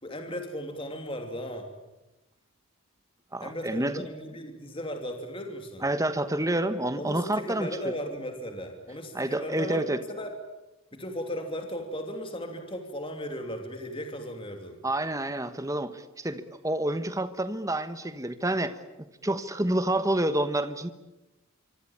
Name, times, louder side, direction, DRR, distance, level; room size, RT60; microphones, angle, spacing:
voice 1, 0.0-1.7 3.4-5.8 7.0-10.3 10.9-14.8, equal, 25° left, 4 dB, 2.9 m, -36 dB
voice 2, 3.3-4.0 5.8-7.7 9.1-10.0 14.8-18.7 19.2-20.9, right 1 dB, 15° right, 11 dB, 1.2 m, -28 dB
26.0 x 25.0 x 8.8 m, 1.0 s
head